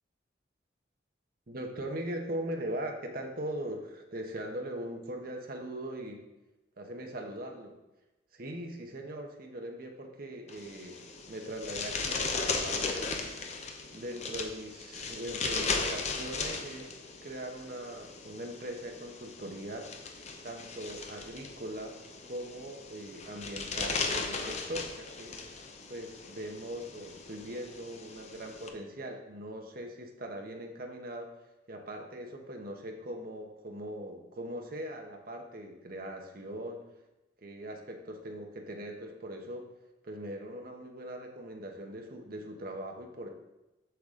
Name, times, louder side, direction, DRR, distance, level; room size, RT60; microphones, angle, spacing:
voice 1, 1.5-6.2 6.8-7.8 8.3-11.0 11.3-13.2 13.7-19.9 20.4-22.0 22.2-25.4 25.9-31.3 31.7-36.8 37.4-39.7 40.0-43.3, right 1 dB, 50° right, 3 dB, 1.0 m, -40 dB
sound 1, 10.5-28.7, left 4 dB, 35° left, 0.7 m, -37 dB
7.9 x 6.6 x 3.7 m, 1.0 s
head